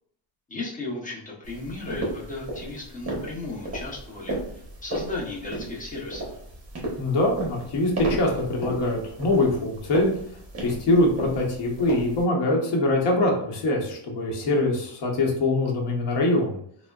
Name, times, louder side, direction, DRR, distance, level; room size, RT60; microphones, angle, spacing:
voice 1, 0.5-6.4, left 3 dB, 15° left, -3 dB, 0.6 m, -35 dB
sound 1, 1.4-12.2, right 1 dB, 35° right, 0.8 m, -35 dB
voice 2, 7.0-10.1 10.6-16.6, left 2 dB, 60° left, -1 dB, 0.9 m, -23 dB
3.4 x 2.1 x 2.2 m, 0.68 s
cardioid pair, 145°, 47 cm